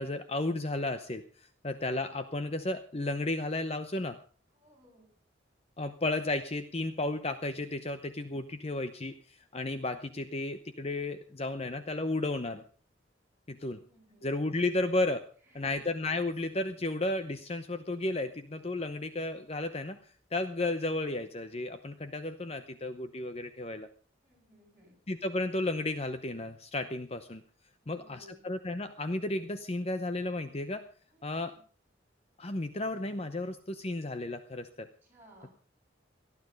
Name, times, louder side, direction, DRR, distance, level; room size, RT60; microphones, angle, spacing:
voice 1, 0.0-4.2 5.8-12.6 13.5-13.8 14.2-15.2 15.5-23.9 25.1-27.4 27.9-30.8 31.2-31.5 32.4-34.9, left 2 dB, 30° left, 10 dB, 0.8 m, -33 dB
voice 2, 4.5-5.1 13.8-14.3 15.5-15.9 24.2-24.9 27.8-28.4 31.1-31.7 35.0-35.5, equal, 10° right, -3 dB, 7.7 m, -59 dB
18.5 x 12.0 x 5.4 m, 0.41 s
head